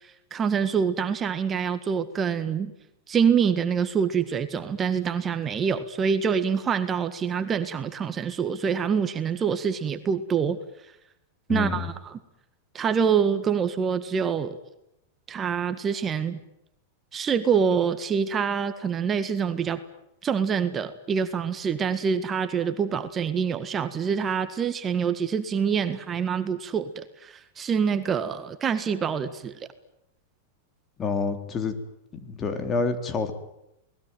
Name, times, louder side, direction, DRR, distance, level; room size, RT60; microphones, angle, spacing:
voice 1, 0.0-2.7 3.1-10.6 11.5-12.2 12.7-14.6 15.3-16.4 17.1-19.8 20.2-29.7, right 6 dB, 25° right, 10 dB, 1.7 m, -26 dB
voice 2, 11.5-11.9 31.0-31.7 32.1-33.3, left 4 dB, 30° left, 7 dB, 3.9 m, -28 dB
28.5 x 20.0 x 9.2 m, 0.86 s
hypercardioid pair, 110°, 0 cm